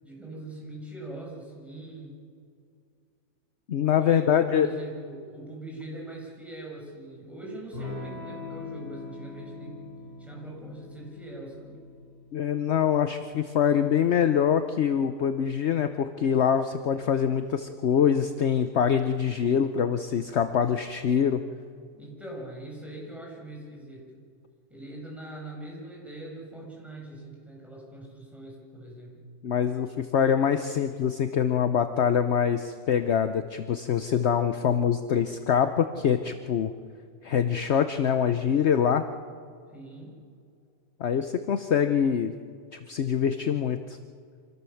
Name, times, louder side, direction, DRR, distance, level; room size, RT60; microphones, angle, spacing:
voice 1, 0.0-2.2 4.0-9.8 10.2-11.8 21.9-24.2 24.7-29.3 39.7-40.1, right 1 dB, ahead, -3 dB, 6.7 m, -42 dB
voice 2, 3.7-4.7 12.3-21.4 29.4-36.7 37.2-39.1 41.0-42.3 42.7-44.0, left 8 dB, 60° left, 9 dB, 1.0 m, -24 dB
Electric guitar / Strum, 7.7-16.0, left 3 dB, 45° right, 7.0 m, -44 dB
26.5 x 17.0 x 7.1 m, 2.3 s
omnidirectional pair, 1.4 m